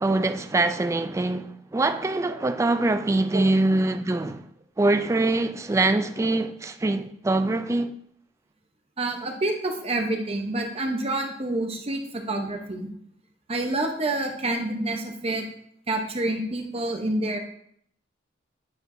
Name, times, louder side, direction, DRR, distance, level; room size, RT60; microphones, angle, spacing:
voice 1, 0.0-4.5 4.8-7.9, right 2 dB, 15° right, 0.3 m, -24 dB
voice 2, 9.0-12.9 13.5-15.4 15.9-17.4, right 2 dB, 35° right, 0.8 m, -28 dB
9.4 x 4.5 x 2.6 m
head